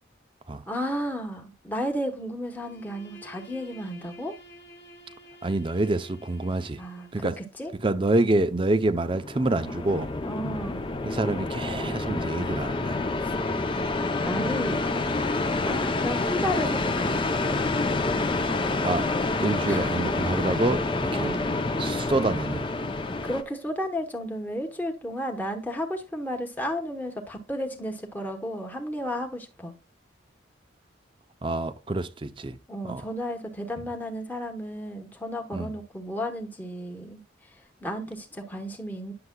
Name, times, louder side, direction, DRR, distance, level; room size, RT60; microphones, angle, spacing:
voice 1, 0.7-4.3 6.8-7.7 10.2-10.9 13.2-13.3 14.2-15.0 15.6-17.3 19.7-19.9 21.1-21.5 23.2-29.7 32.7-37.5 37.8-39.1, equal, 10° left, 1.0 m, -33 dB
Bowed string instrument, 2.5-7.4, equal, 55° left, 1.1 m, -50 dB
voice 2, 5.4-6.8 7.1-7.4 7.8-10.1 11.0-13.0 15.6-15.7 18.8-20.8 21.1-21.3 21.8-22.7 31.4-32.6 32.8-33.0 35.5-35.7, right 2 dB, 25° right, 0.5 m, -27 dB
sound 1, 9.0-23.4, left 2 dB, 25° left, 0.5 m, -28 dB
9.6 x 6.6 x 2.2 m
head